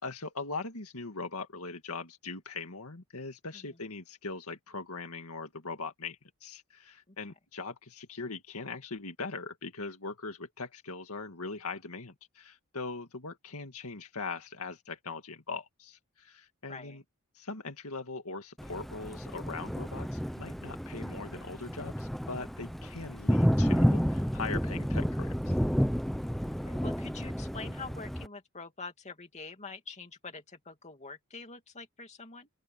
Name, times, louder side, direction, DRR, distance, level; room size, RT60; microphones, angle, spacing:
voice 1, 0.0-17.0 17.4-25.6, left 4 dB, 75° left, 2.1 m, -41 dB
Thunder, 18.6-28.3, equal, ahead, 0.7 m, -30 dB
voice 2, 26.4-32.5, left 4 dB, 30° left, 2.7 m, -45 dB
open air
head